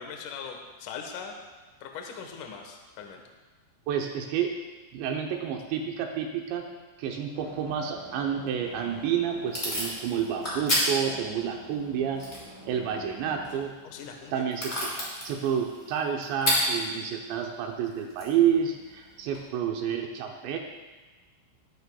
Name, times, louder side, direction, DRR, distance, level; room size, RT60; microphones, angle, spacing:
voice 1, 0.0-1.3 1.8-3.2 13.8-14.4, left 6 dB, 90° left, 3 dB, 1.8 m, -40 dB
voice 2, 3.9-4.5 4.9-6.7 7.0-12.2 12.7-13.7 14.3-14.9 15.2-20.6, right 8 dB, 80° right, 2 dB, 2.7 m, -29 dB
sound 1, 7.3-13.6, right 1 dB, 50° right, 3.4 m, -48 dB
Packing tape duct tape / Tearing, 8.6-19.4, equal, 10° left, 3.8 m, -34 dB
20.5 x 9.9 x 2.3 m, 1.3 s
omnidirectional pair, 5.7 m